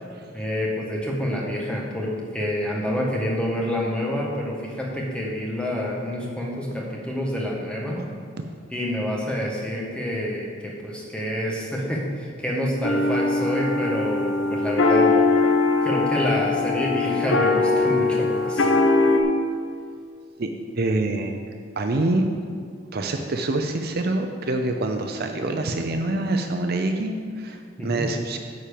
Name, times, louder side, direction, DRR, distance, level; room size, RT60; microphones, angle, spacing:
voice 1, 0.3-8.1 8.7-15.1 15.4-15.5 15.8-18.7 27.8-28.0, equal, 5° left, -3 dB, 1.5 m, -27 dB
sound 1, 12.8-19.2, left 3 dB, 70° left, 0.9 m, -21 dB
voice 2, 20.4-21.4 21.8-22.2 22.9-28.4, right 2 dB, 55° right, 5 dB, 0.6 m, -26 dB
9.6 x 4.4 x 6.9 m, 2.3 s
head